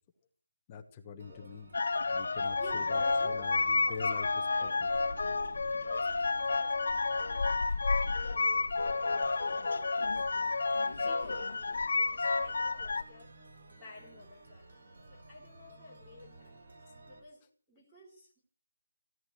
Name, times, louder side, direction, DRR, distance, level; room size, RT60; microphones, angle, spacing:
voice 1, 0.7-1.7 2.1-4.3 4.6-4.9, left 6 dB, 15° left, 5 dB, 1.2 m, -44 dB
sound 1, 1.2-17.2, right 2 dB, 45° right, 5.9 m, -56 dB
sound 2, 1.7-13.0, left 3 dB, 50° left, 2.4 m, -30 dB
sound 3, 2.4-10.7, right 3 dB, 25° right, 3.3 m, -55 dB
voice 2, 2.6-3.5 3.8-4.8 5.8-7.4 8.0-10.6 10.9-13.3 13.7-14.7 15.1-16.6 17.1-18.4, left 2 dB, 5° right, -6 dB, 3.3 m, -51 dB
17.0 x 11.0 x 7.6 m, 0.41 s
hypercardioid pair, 180°, 0 cm